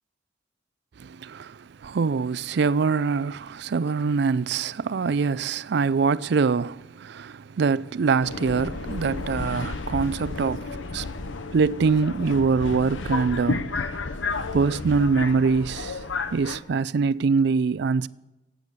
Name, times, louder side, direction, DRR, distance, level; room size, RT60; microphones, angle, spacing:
voice 1, 1.0-11.1 11.5-13.8 14.5-16.0 16.3-18.1, right 5 dB, 60° right, 0.4 m, -24 dB
Subway metro underground, 8.2-16.6, left 3 dB, 85° left, 0.9 m, -32 dB
15.5 x 8.5 x 6.6 m
head